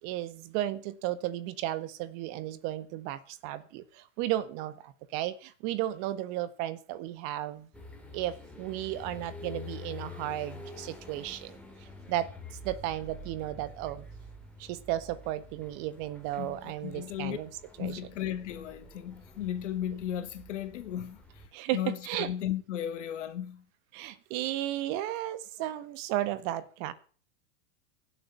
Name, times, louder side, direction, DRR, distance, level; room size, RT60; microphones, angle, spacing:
voice 1, 0.0-7.7 8.1-12.3 12.6-14.1 14.6-18.0 21.5-22.3 23.9-26.9, right 14 dB, 45° right, 1.5 m, -34 dB
sound 1, 7.7-21.5, left 2 dB, 5° left, 3.2 m, -47 dB
voice 2, 16.4-17.4 17.8-21.2 21.7-23.6, left 11 dB, 75° left, 2.6 m, -35 dB
17.0 x 7.7 x 6.9 m
hypercardioid pair, 130°, 36 cm